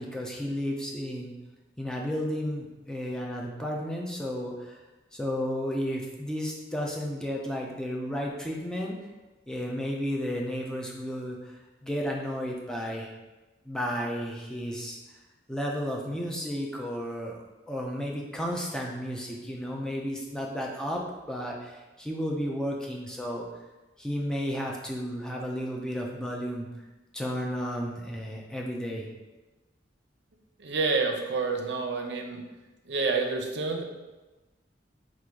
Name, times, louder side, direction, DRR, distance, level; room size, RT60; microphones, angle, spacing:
voice 1, 0.0-1.3 1.8-4.8 5.1-8.9 9.5-11.5 11.8-13.1 13.6-15.0 15.5-17.4 17.7-21.0 21.3-23.4 24.0-26.7 27.1-29.1, equal, 5° left, -1 dB, 0.5 m, -33 dB
voice 2, 30.6-32.4 32.9-33.8, right 4 dB, 70° right, 3 dB, 0.6 m, -28 dB
3.6 x 2.5 x 4.6 m, 1.1 s
head